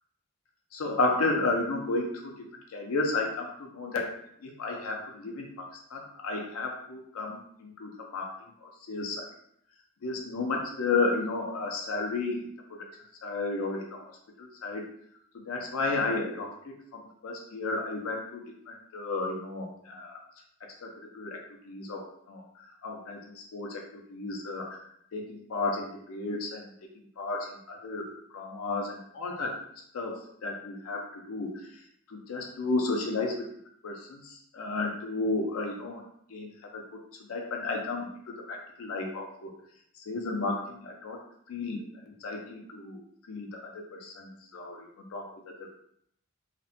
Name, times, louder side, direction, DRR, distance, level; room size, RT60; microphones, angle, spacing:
voice 1, 0.7-2.4 2.7-4.1 4.4-8.4 8.6-9.3 10.0-12.4 12.7-12.9 13.2-14.0 14.4-14.8 15.5-20.2 20.8-21.4 21.6-24.8 25.1-26.7 27.2-28.1 28.3-29.5 29.9-31.5 32.1-33.3 33.8-36.0 36.3-37.0 37.3-39.5 40.1-41.2 41.5-45.3 45.6-45.8, left 3 dB, 85° left, 1 dB, 0.5 m, -33 dB
2.5 x 2.1 x 2.6 m, 0.70 s
head